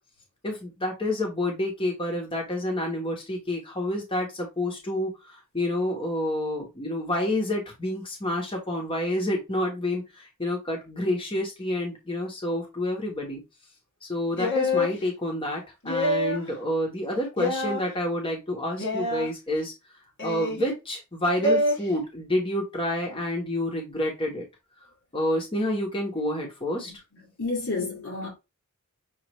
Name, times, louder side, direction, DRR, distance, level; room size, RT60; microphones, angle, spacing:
voice 1, 0.4-10.0 10.4-13.4 14.0-19.7 20.2-24.4 25.1-26.9, left 1 dB, 25° left, 1.2 m, -28 dB
sound 1, 14.4-15.0 15.8-16.5 17.4-17.8 18.8-19.3 20.2-20.7 21.4-21.8, left 2 dB, 55° left, 1.3 m, -25 dB
voice 2, 26.8-28.3, left 3 dB, 70° left, 2.0 m, -32 dB
6.5 x 2.7 x 3.0 m
head